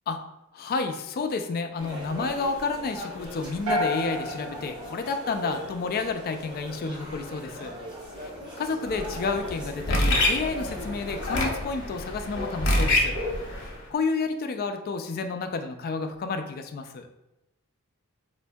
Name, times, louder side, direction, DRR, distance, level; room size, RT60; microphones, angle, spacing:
voice 1, 0.5-7.7 8.2-8.3 8.6-13.2 13.6-17.1, left 4 dB, 45° left, 7 dB, 0.3 m, -30 dB
sound 1, 1.8-11.6, equal, 20° right, 0.8 m, -40 dB
sound 2, 3.7-5.9, equal, 70° right, 0.6 m, -31 dB
sound 3, 8.9-13.8, left 1 dB, 60° left, 0.7 m, -27 dB
4.3 x 2.5 x 2.2 m, 0.93 s
head